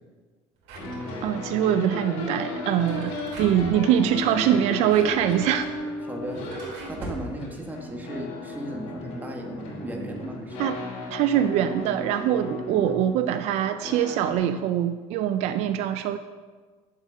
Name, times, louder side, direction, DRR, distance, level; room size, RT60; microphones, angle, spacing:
Drawer open or close, 0.6-1.6 2.6-3.8 4.6-7.3, right 2 dB, 85° right, 2.9 m, -42 dB
sound 1, 0.7-14.3, left 2 dB, 70° left, 3.1 m, -35 dB
voice 1, 1.2-5.7 10.6-10.8 11.1-16.2, right 10 dB, 65° right, 10 dB, 0.5 m, -23 dB
voice 2, 6.0-6.4 6.8-10.7 12.6-13.0, equal, 15° right, 2 dB, 1.4 m, -36 dB
8.5 x 7.4 x 6.3 m, 1.4 s
cardioid pair, 145°, 12 cm